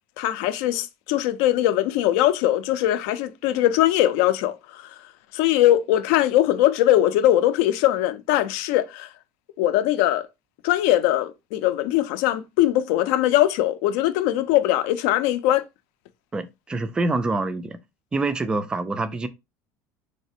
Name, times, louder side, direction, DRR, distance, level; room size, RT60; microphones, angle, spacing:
voice 1, 0.2-4.9 5.3-9.1 9.6-10.3 10.6-15.6, left 13 dB, 70° left, 0.5 m, -21 dB
voice 2, 16.3-17.8 18.1-19.3, right 3 dB, 10° right, 0.3 m, -26 dB
4.0 x 3.2 x 2.7 m
cardioid pair, 170°, 8 cm